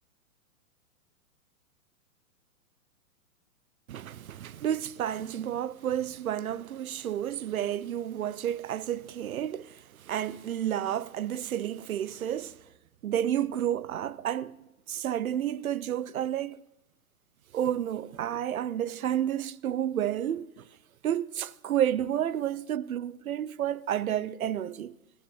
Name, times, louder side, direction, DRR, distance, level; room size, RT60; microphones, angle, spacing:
voice 1, 3.9-12.6 13.0-14.5 14.9-16.6 17.5-20.7 21.0-24.9, right 10 dB, 70° right, 0.8 m, -31 dB
16.0 x 9.6 x 8.9 m
hypercardioid pair, 115°, 44 cm